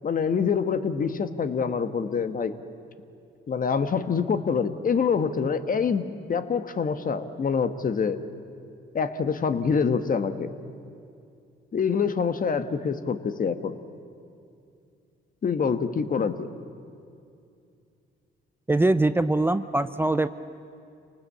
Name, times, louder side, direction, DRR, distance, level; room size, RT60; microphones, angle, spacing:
voice 1, 0.0-2.5 3.5-8.2 8.9-10.5 11.7-13.7 15.4-16.5, left 6 dB, 45° left, 10 dB, 1.3 m, -26 dB
voice 2, 18.7-20.3, right 2 dB, 10° right, 12 dB, 0.6 m, -22 dB
27.0 x 19.0 x 8.4 m, 2.5 s
cardioid pair, 90°, 20 cm